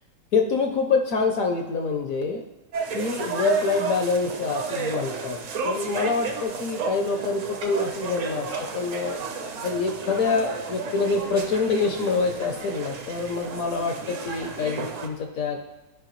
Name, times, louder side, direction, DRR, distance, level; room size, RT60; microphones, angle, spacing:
voice 1, 0.3-2.4 2.9-5.4 5.6-9.2 9.6-15.6, left 4 dB, 65° left, 3 dB, 0.9 m, -26 dB
sound 1, 2.7-15.1, right 5 dB, 55° right, 1.0 m, -32 dB
12.5 x 5.3 x 3.0 m, 1.1 s
omnidirectional pair, 2.0 m